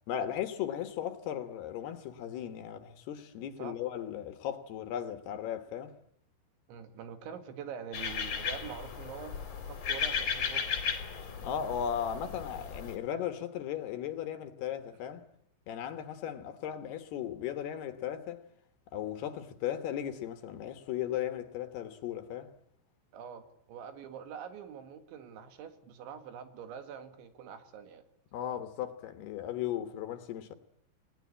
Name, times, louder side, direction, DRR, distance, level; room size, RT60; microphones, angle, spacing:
voice 1, 0.1-6.0 11.3-15.3 15.7-18.4 18.9-22.5 28.3-30.5, left 10 dB, 70° left, 3.2 m, -36 dB
voice 2, 6.7-9.4 9.6-10.7 23.1-28.0, right 7 dB, 90° right, 4.4 m, -45 dB
sound 1, 7.9-13.0, left 7 dB, 40° left, 3.8 m, -35 dB
29.5 x 18.5 x 8.6 m
omnidirectional pair, 5.2 m